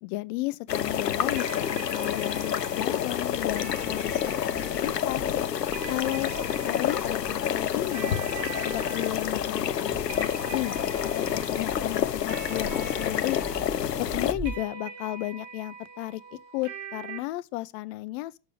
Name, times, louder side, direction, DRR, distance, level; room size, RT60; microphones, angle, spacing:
voice 1, 0.0-1.7 1.9-5.2 5.9-6.4 6.6-8.2 8.7-10.7 11.3-13.4 14.0-16.2 16.5-18.4, left 18 dB, 45° left, 0.7 m, -33 dB
sound 1, 0.7-14.3, left 9 dB, 85° left, 0.8 m, -28 dB
sound 2, 1.4-17.2, right 5 dB, 40° right, 2.2 m, -43 dB
sound 3, 3.3-14.7, right 2 dB, 5° right, 1.3 m, -44 dB
6.7 x 6.7 x 7.6 m
hypercardioid pair, 95°, 48 cm